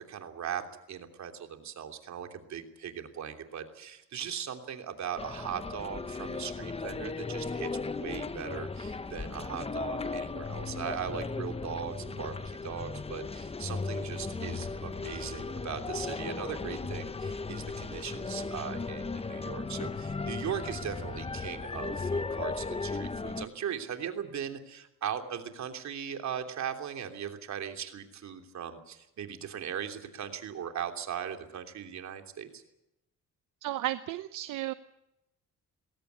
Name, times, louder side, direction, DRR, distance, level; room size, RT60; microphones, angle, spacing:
voice 1, 0.1-0.6 0.9-32.6, right 8 dB, 65° right, 5 dB, 3.1 m, -39 dB
saxo.calle, 5.2-23.5, left 4 dB, 20° left, 0.9 m, -36 dB
voice 2, 33.6-34.7, right 14 dB, 85° right, 12 dB, 0.9 m, -33 dB
21.5 x 18.0 x 8.3 m, 0.89 s
cardioid pair, 90°, 30 cm